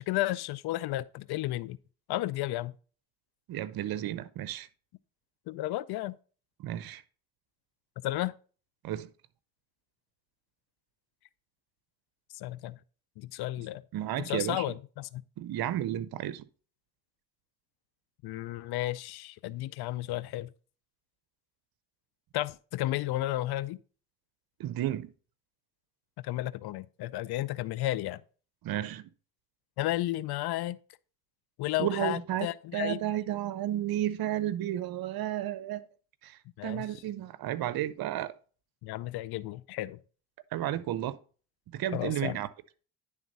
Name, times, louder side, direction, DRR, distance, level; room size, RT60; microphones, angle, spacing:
voice 1, 0.0-1.8 2.1-2.7 5.5-6.2 8.0-8.3 12.4-12.8 13.2-13.8 14.2-15.2 18.2-20.5 22.3-23.8 26.2-28.2 29.8-30.8 31.6-33.0 36.6-36.8 38.8-40.0 41.9-42.4, left 16 dB, 80° left, 0.6 m, -33 dB
voice 2, 3.5-4.7 6.6-7.0 8.8-9.1 13.9-14.7 15.4-16.4 24.6-25.1 28.6-29.1 31.8-35.8 36.2-38.3 40.5-41.2 41.7-42.5, right 12 dB, 65° right, 0.7 m, -32 dB
10.0 x 3.5 x 5.3 m
cardioid pair, 70°, 38 cm